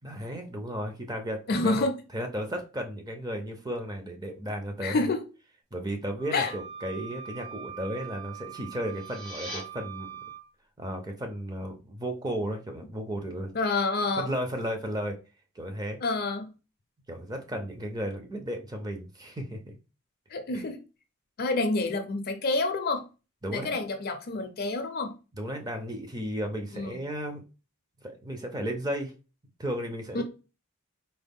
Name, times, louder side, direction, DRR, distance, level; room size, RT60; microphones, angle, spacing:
voice 1, 0.0-1.9 2.1-5.1 5.7-10.3 10.8-13.5 14.2-15.2 15.6-16.0 17.1-19.7 20.5-20.6 23.4-23.8 25.3-27.4 28.0-29.1 29.6-30.2, equal, 15° right, 0.5 m, -34 dB
voice 2, 1.5-2.0 4.8-5.2 6.3-6.5 13.5-14.3 16.0-16.5 20.3-20.8 21.4-23.1 23.5-25.1 26.7-27.0 30.1-30.2, left 3 dB, 45° left, 0.5 m, -28 dB
Wind instrument woodwind instrument, 6.2-10.4, right 8 dB, 45° right, 1.2 m, -43 dB
sound 1, 8.8-9.6, equal, 70° right, 2.1 m, -40 dB
4.0 x 2.1 x 3.5 m
head